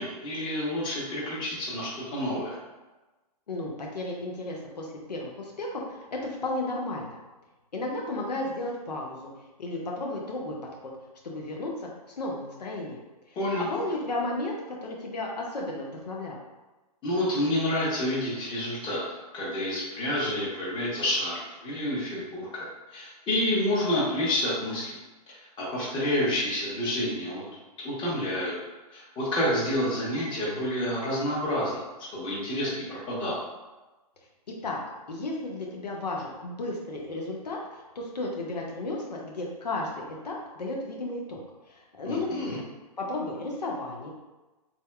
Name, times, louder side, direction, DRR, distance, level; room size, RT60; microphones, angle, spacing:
voice 1, 0.0-2.6 13.4-13.7 17.0-22.7 22.9-25.0 25.3-27.4 27.8-28.5 28.9-31.8 32.1-33.4 42.0-42.6, left 1 dB, 25° left, -6 dB, 1.1 m, -29 dB
voice 2, 3.5-7.2 7.7-9.3 9.6-10.6 10.8-10.9 11.2-11.9 12.2-13.0 13.3-16.4 34.6-34.8 35.1-41.4 41.7-42.6 43.0-44.1, left 2 dB, 85° left, -1 dB, 0.7 m, -33 dB
3.6 x 2.6 x 2.2 m, 1.1 s
hypercardioid pair, 125°, 20 cm